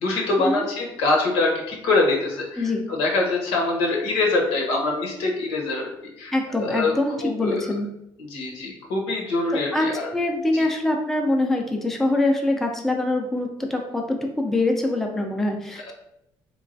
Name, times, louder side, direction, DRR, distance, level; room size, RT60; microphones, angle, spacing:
voice 1, 0.0-5.9 6.2-6.9 7.2-7.7 8.2-10.1 10.5-10.6 15.9-16.0, left 3 dB, 85° left, 0 dB, 0.8 m, -24 dB
voice 2, 6.3-7.9 9.5-9.9 10.1-15.9, left 2 dB, 5° left, 1 dB, 0.4 m, -24 dB
3.1 x 2.2 x 2.6 m, 0.82 s
supercardioid pair, 90°, 10 cm